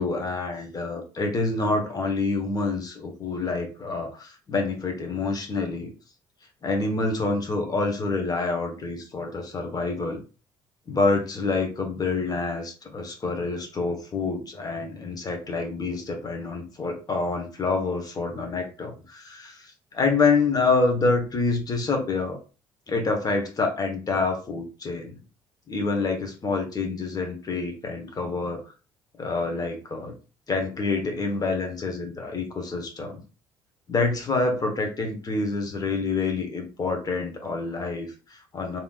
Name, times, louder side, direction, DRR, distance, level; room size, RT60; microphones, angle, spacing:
voice 1, 0.0-5.9 6.6-10.2 10.9-22.4 22.9-25.2 25.7-28.6 29.2-30.1 30.5-33.2 33.9-38.8, left 3 dB, 30° left, 3 dB, 1.0 m, -27 dB
3.3 x 2.7 x 2.3 m, 0.34 s
figure-of-eight pair, 50°, 13 cm